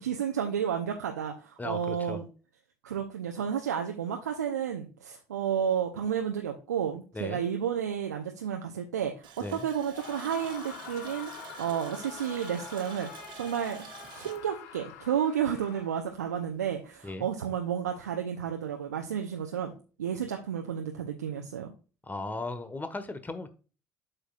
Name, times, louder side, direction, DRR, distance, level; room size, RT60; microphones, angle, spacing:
voice 1, 0.0-2.3 2.8-11.3 11.6-13.1 13.3-13.9 14.1-19.7 20.0-21.7, right 8 dB, 90° right, 3 dB, 0.7 m, -31 dB
voice 2, 1.6-2.2 7.1-7.4 9.4-9.7 17.0-17.3 22.1-23.5, left 2 dB, 20° left, 10 dB, 1.4 m, -36 dB
Water tap faucet, 9.2-15.7 16.1-16.2 16.6-16.8, right 7 dB, 60° right, 1.5 m, -48 dB
Screaming, 9.9-16.2, left 9 dB, 80° left, 1.0 m, -46 dB
8.1 x 6.6 x 2.4 m, 0.34 s
hypercardioid pair, 50°, 9 cm